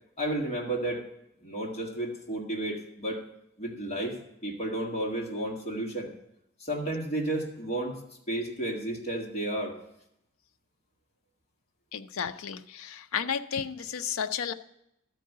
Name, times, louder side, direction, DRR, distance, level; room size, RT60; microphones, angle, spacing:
voice 1, 0.2-1.1 1.4-3.2 3.6-4.2 4.4-6.1 6.6-8.0 8.3-9.8, right 1 dB, 30° left, 0 dB, 1.7 m, -32 dB
voice 2, 11.9-14.5, left 7 dB, 75° left, 10 dB, 0.5 m, -33 dB
12.5 x 4.7 x 6.6 m, 0.80 s
head